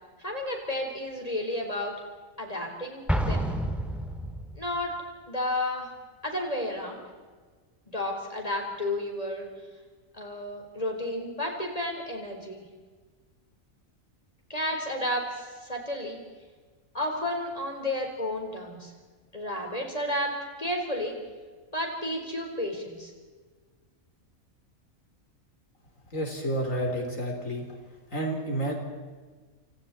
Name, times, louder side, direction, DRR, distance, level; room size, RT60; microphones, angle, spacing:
voice 1, 0.2-1.9 2.4-3.5 4.6-5.0 5.3-5.9 6.2-7.0 7.9-9.5 10.1-12.7 14.5-16.2 16.9-18.9 19.3-21.2 21.7-23.1, left 1 dB, 25° left, 1 dB, 4.5 m, -32 dB
Explosion, 3.1-4.7, equal, ahead, 2.1 m, -29 dB
voice 2, 26.1-27.7 28.1-28.7, right 1 dB, 75° left, 2 dB, 3.8 m, -30 dB
29.0 x 28.5 x 4.3 m, 1.4 s
omnidirectional pair, 1.4 m